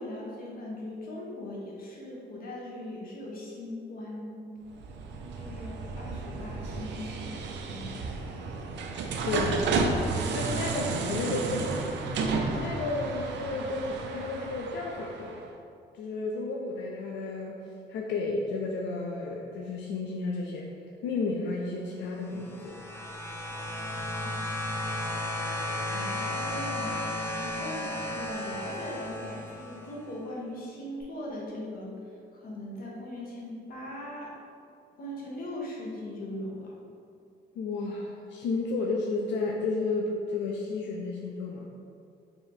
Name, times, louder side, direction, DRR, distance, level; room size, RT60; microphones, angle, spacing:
voice 1, 0.0-4.6 5.4-8.1 25.9-27.1 27.4-31.9 32.3-34.4 35.0-36.8, left 1 dB, 55° left, -3 dB, 0.9 m, -40 dB
sound 1, 4.7-15.4, right 3 dB, 80° right, 0.4 m, -32 dB
voice 2, 9.2-9.7 10.3-12.1 12.5-15.5 16.0-17.6 17.9-20.7 21.0-22.8 27.8-27.9 37.6-41.7, left 3 dB, 90° left, -1 dB, 0.4 m, -32 dB
sound 2, 22.2-29.9 31.0-31.1, left 1 dB, 15° left, 0.5 m, -34 dB
3.3 x 2.8 x 4.4 m, 2.4 s
cardioid pair, 140°, 18 cm